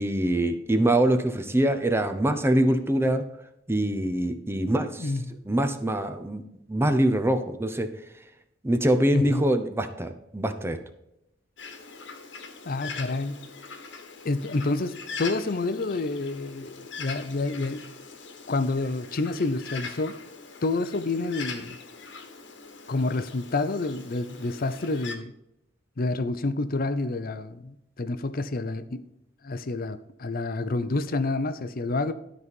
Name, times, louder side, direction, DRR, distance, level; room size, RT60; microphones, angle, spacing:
voice 1, 0.0-3.2 3.7-5.1 5.5-6.4 6.7-7.9 8.6-10.8, right 1 dB, 15° right, 8 dB, 0.7 m, -24 dB
voice 2, 9.1-9.5 12.7-13.5 14.2-17.9 18.5-20.2 20.6-21.8 22.9-25.3 26.0-29.0 29.4-32.1, left 2 dB, 50° left, 13 dB, 0.6 m, -28 dB
Bird, 11.6-25.1, left 5 dB, 65° left, 1.4 m, -42 dB
12.5 x 4.1 x 5.3 m, 0.84 s
head